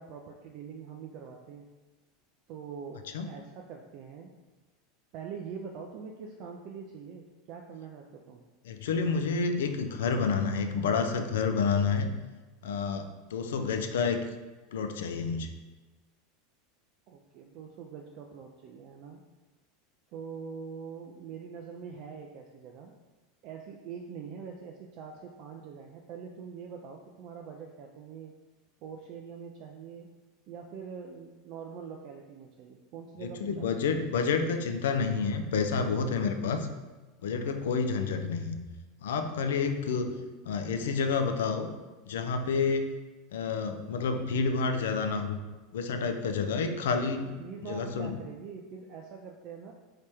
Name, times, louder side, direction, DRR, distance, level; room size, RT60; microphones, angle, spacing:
voice 1, 0.0-1.7 2.5-4.3 5.1-8.4 17.1-19.2 20.1-22.9 23.4-28.3 28.8-30.1 30.5-34.0 40.0-40.3 47.2-49.7, right 6 dB, 50° right, 2 dB, 0.3 m, -44 dB
voice 2, 8.7-12.1 12.6-14.2 14.7-15.5 33.4-36.7 37.2-38.6 39.0-40.1 40.5-41.7 42.1-42.9 43.3-45.4 45.7-47.3 47.6-48.1, left 5 dB, 65° left, 7 dB, 0.3 m, -29 dB
3.2 x 2.8 x 3.3 m, 1.2 s
figure-of-eight pair, 80°, 0 cm